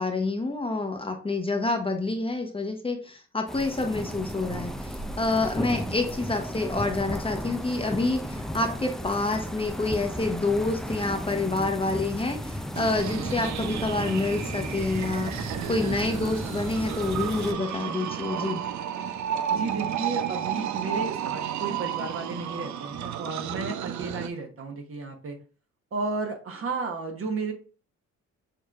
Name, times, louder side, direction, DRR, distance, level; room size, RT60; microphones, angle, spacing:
voice 1, 0.0-18.6, left 2 dB, 20° left, 3 dB, 0.9 m, -28 dB
sound 1, 3.5-17.5, equal, ahead, 0.4 m, -34 dB
sound 2, 12.7-24.3, right 9 dB, 70° right, 0.5 m, -32 dB
voice 2, 19.5-25.4 25.9-27.5, right 3 dB, 45° right, 4 dB, 1.2 m, -33 dB
6.4 x 3.1 x 2.4 m, 0.37 s
cardioid pair, 90°, 30 cm